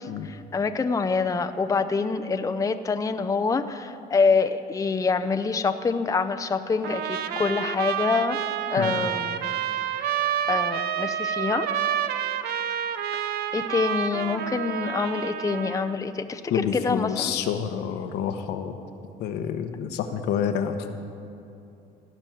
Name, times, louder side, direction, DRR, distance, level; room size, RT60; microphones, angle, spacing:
voice 1, 0.0-8.4 8.7-9.6 9.9-11.7 13.1-17.3, left 4 dB, 20° left, 9 dB, 0.6 m, -26 dB
Trumpet, 6.8-16.0, right 9 dB, 70° right, 0.7 m, -29 dB
voice 2, 8.8-9.1 16.5-18.7 19.2-20.9, left 8 dB, 80° left, 7 dB, 1.0 m, -28 dB
17.0 x 6.2 x 9.2 m, 2.7 s
cardioid pair, 110°, 17 cm